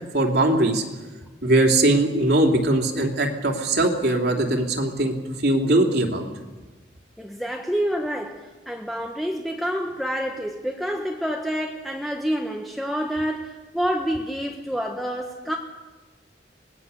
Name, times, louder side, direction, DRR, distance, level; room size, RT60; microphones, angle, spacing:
voice 1, 0.1-0.8 1.4-6.3, right 1 dB, 65° right, 2 dB, 3.0 m, -21 dB
voice 2, 7.2-15.6, equal, ahead, 1 dB, 1.1 m, -28 dB
25.0 x 19.5 x 7.0 m, 1.2 s
head